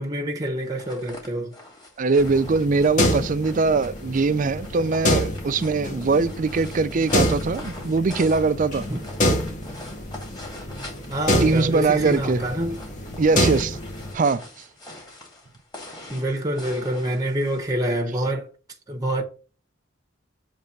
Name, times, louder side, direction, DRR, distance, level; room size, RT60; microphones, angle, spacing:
voice 1, 0.0-1.5 8.9-9.0 11.1-12.8 16.1-18.5 18.9-19.2, right 1 dB, 20° right, 0.8 m, -26 dB
sound 1, 0.6-17.7, left 1 dB, 20° left, 2.1 m, -43 dB
voice 2, 2.0-8.9 11.4-12.5 13.2-13.8 14.1-14.4, right 4 dB, 40° right, 0.4 m, -22 dB
sound 2, 2.2-14.1, equal, 40° left, 1.2 m, -27 dB
7.4 x 3.4 x 5.2 m
head